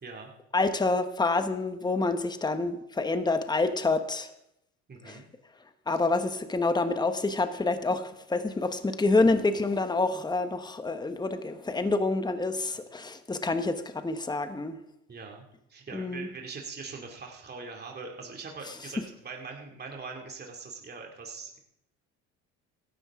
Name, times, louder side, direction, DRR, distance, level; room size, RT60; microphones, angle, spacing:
voice 1, 0.5-4.3 5.0-5.2 5.9-14.8 15.9-16.3, left 3 dB, 10° left, 9 dB, 1.2 m, -27 dB
voice 2, 4.9-5.2 15.1-15.4 15.7-21.6, right 4 dB, 30° right, 1 dB, 2.5 m, -42 dB
17.0 x 12.0 x 3.7 m, 0.80 s
supercardioid pair, 80°, 33 cm